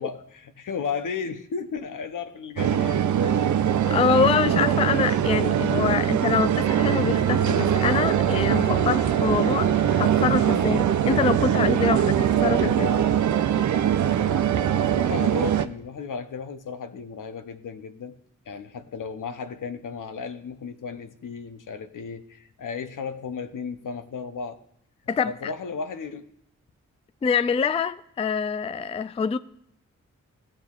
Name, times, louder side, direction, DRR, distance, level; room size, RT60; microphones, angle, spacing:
voice 1, 0.0-3.4 14.9-18.2 18.5-24.6 25.2-26.3, left 5 dB, 70° left, 0.8 m, -34 dB
sound 1, 2.6-15.7, right 9 dB, 65° right, 0.5 m, -22 dB
voice 2, 3.9-9.7 10.0-13.0 25.1-25.5 27.2-29.4, left 6 dB, 20° left, 0.3 m, -25 dB
Wind instrument woodwind instrument, 7.2-12.0, left 5 dB, 10° right, 1.1 m, -43 dB
14.5 x 7.4 x 2.4 m
cardioid pair, 45°, 33 cm